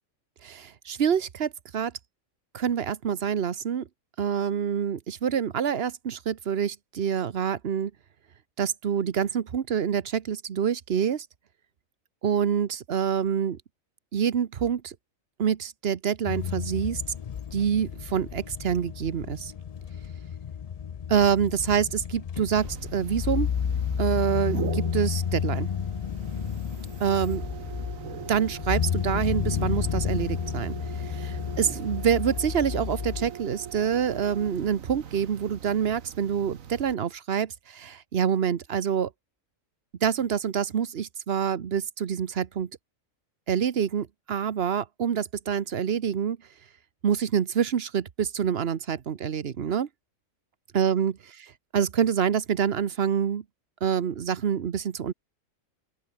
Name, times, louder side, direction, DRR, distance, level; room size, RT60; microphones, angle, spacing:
voice 1, 0.4-1.9 2.5-3.9 4.2-7.9 8.6-11.3 12.2-13.6 14.1-14.9 15.4-17.0 17.5-19.5 21.1-23.5 24.0-25.7 27.0-27.4 28.3-39.1 40.0-42.7 43.5-46.4 47.0-49.9 50.7-51.1 51.7-53.4 53.8-55.1, right 8 dB, 50° right, 1.1 m, -26 dB
sound 1, 16.2-33.3, left 8 dB, 75° left, 0.3 m, -31 dB
sound 2, 22.5-36.9, right 8 dB, 80° right, 1.5 m, -41 dB
open air
omnidirectional pair, 1.4 m